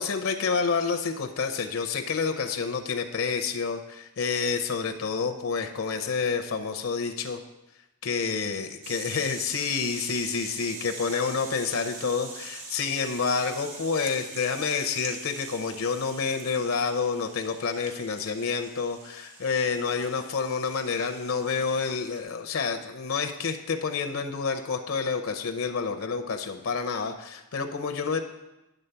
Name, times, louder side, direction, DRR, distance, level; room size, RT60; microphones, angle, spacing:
voice 1, 0.0-7.4 8.0-28.2, left 5 dB, 70° left, 6 dB, 0.6 m, -29 dB
sound 1, 8.8-22.2, right 3 dB, 90° right, 1.4 m, -43 dB
10.0 x 3.9 x 6.8 m, 0.97 s
head